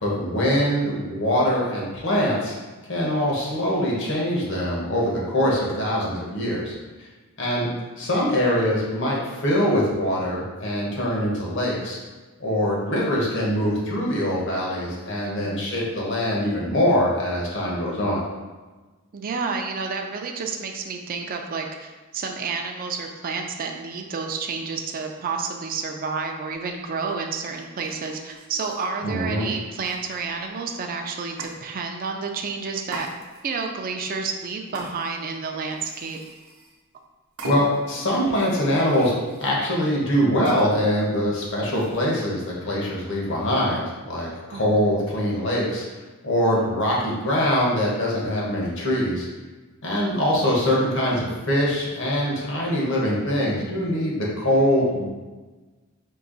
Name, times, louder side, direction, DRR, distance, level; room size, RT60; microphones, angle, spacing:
voice 1, 0.0-2.5 2.9-6.7 7.4-7.7 8.0-12.0 12.4-18.2 29.0-29.5 37.4-39.1 39.4-45.8 46.2-49.3 49.8-55.0, equal, 60° left, -4 dB, 1.2 m, -23 dB
voice 2, 15.2-15.7 19.1-33.1 33.4-36.2 44.5-44.9, right 4 dB, 40° right, 3 dB, 0.4 m, -30 dB
sound 1, 27.4-29.0 29.8-30.4 31.4-31.6 32.9-33.6 34.7-35.3 35.7-36.8 37.4-37.9 38.3-39.6 40.4-40.7 41.7-42.2, right 2 dB, 75° right, 0.7 m, -41 dB
4.6 x 2.8 x 3.9 m, 1.3 s
head